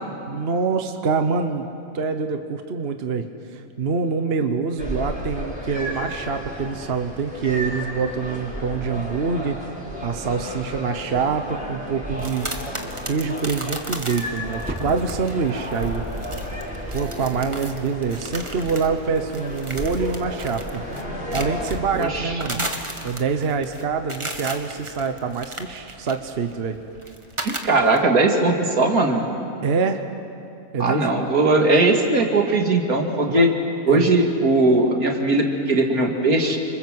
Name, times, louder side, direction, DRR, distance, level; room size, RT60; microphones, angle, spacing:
voice 1, 0.3-1.7 1.9-9.6 10.0-12.5 13.0-16.0 16.9-20.8 21.3-22.6 23.0-26.8 29.6-30.0 30.7-31.0 33.3-33.5 33.9-34.1, right 5 dB, 45° right, 7 dB, 1.2 m, -25 dB
sound 1, 4.8-21.9, equal, 5° right, 5.9 m, -33 dB
sound 2, 12.2-28.0, right 1 dB, 20° right, 1.7 m, -36 dB
voice 2, 22.0-22.7 27.4-29.2 30.8-33.5 33.9-36.6, right 2 dB, 75° right, 2 dB, 2.9 m, -19 dB
28.5 x 26.5 x 7.7 m, 2.6 s
omnidirectional pair, 1.6 m